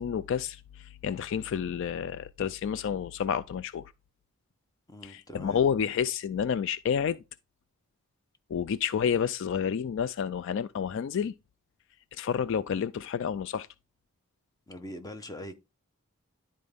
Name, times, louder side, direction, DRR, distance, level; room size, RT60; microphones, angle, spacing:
voice 1, 0.0-3.9 5.0-7.2 8.5-11.3 12.1-13.7, left 7 dB, 55° left, 0.3 m, -30 dB
voice 2, 4.9-5.6 14.7-15.6, left 1 dB, 15° left, 0.9 m, -42 dB
11.0 x 4.2 x 3.5 m
head